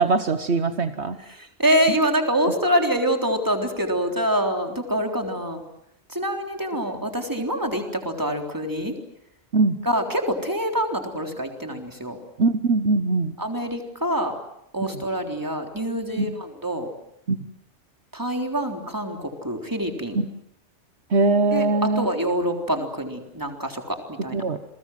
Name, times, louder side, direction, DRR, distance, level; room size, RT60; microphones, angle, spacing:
voice 1, 0.0-1.2 1.9-2.0 9.5-9.8 12.4-13.3 14.8-15.0 16.2-16.3 17.3-17.5 20.1-20.3 21.1-22.1 24.3-24.6, right 3 dB, 65° right, 9 dB, 1.5 m, -22 dB
voice 2, 1.3-5.6 6.1-8.9 9.8-12.2 13.4-14.3 14.7-16.9 18.1-20.2 21.5-24.4, equal, 15° right, 3 dB, 3.7 m, -25 dB
29.5 x 22.0 x 7.7 m, 0.77 s
omnidirectional pair, 1.2 m